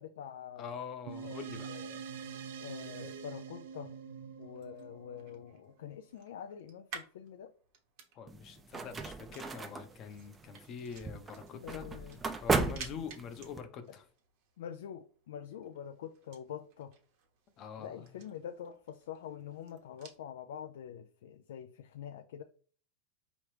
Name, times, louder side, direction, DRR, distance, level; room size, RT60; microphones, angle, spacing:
voice 1, 0.0-0.8 1.2-2.0 2.6-3.9 4.4-7.5 11.6-12.2 14.6-16.9 17.8-22.4, left 9 dB, 85° left, 0.3 m, -45 dB
voice 2, 0.6-1.7 8.1-11.9 12.4-14.0 17.6-18.1, left 6 dB, 35° left, 0.7 m, -44 dB
sound 1, 1.1-5.9, right 6 dB, 80° right, 0.5 m, -45 dB
sound 2, 4.4-20.2, right 6 dB, 60° right, 1.0 m, -55 dB
sound 3, 8.3-13.6, right 4 dB, 15° right, 0.4 m, -36 dB
4.9 x 3.0 x 3.2 m
supercardioid pair, 140°, 0 cm